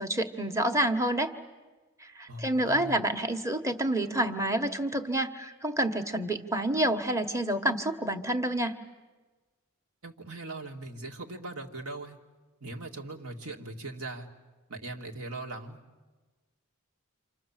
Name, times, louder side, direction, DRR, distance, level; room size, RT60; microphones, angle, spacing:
voice 1, 0.0-1.3 2.0-8.7, right 1 dB, 15° right, 7 dB, 1.3 m, -28 dB
voice 2, 2.3-3.0 10.0-12.2 12.6-14.3 14.7-15.8, right 2 dB, 75° right, 1 dB, 2.5 m, -40 dB
29.5 x 26.0 x 7.5 m, 1.3 s
head